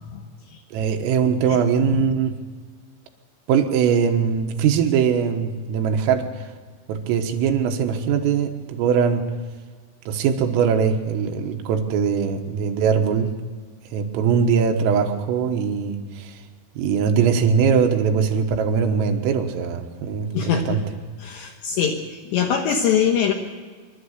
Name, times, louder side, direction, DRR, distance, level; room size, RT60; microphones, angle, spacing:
voice 1, 0.7-2.4 3.5-6.3 6.9-9.3 10.1-13.3 13.9-16.4 16.8-20.8, right 6 dB, 85° right, 4 dB, 4.0 m, -21 dB
voice 2, 20.3-20.8 21.2-23.3, left 7 dB, 70° left, 1 dB, 3.0 m, -22 dB
26.0 x 12.5 x 8.1 m, 1.5 s
omnidirectional pair, 5.8 m